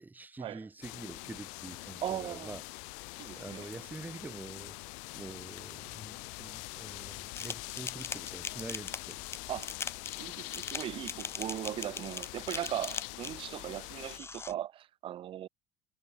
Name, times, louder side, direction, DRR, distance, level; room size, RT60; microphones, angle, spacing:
voice 1, 0.0-2.6 3.3-4.8 5.1-9.2, right 3 dB, 15° right, 2.5 m, -46 dB
sound 1, 0.8-14.2, left 36 dB, 75° left, 1.9 m, -44 dB
voice 2, 2.0-2.6 3.2-3.7 9.5-9.7 10.2-15.5, right 12 dB, 45° right, 1.2 m, -38 dB
sound 2, 7.4-13.5 14.0-14.5, left 4 dB, 20° left, 1.6 m, -40 dB
supercardioid pair, 100°, 12 cm